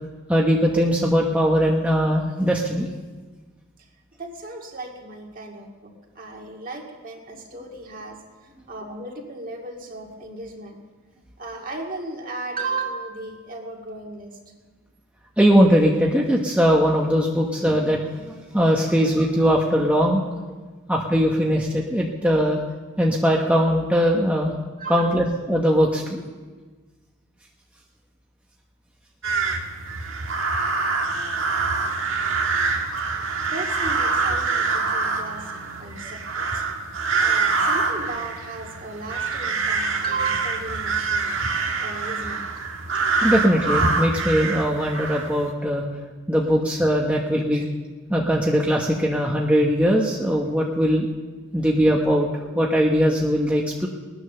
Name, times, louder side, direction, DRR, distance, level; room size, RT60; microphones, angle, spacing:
voice 1, 0.3-2.9 15.4-20.2 20.9-22.6 23.0-24.5 24.9-26.2 43.2-45.8 46.3-47.6 48.1-51.1 51.5-52.3 52.5-53.9, equal, 5° right, -2 dB, 1.1 m, -20 dB
voice 2, 4.2-8.2 8.7-10.8 11.4-14.4 17.6-17.8 24.8-25.2 32.8-35.5 35.8-36.6 37.2-41.3 41.8-42.5 47.5-47.6, right 3 dB, 40° right, 1 dB, 2.2 m, -35 dB
sound 1, 29.2-45.5, right 4 dB, 65° right, 1.7 m, -25 dB
20.5 x 10.0 x 6.8 m, 1.4 s
head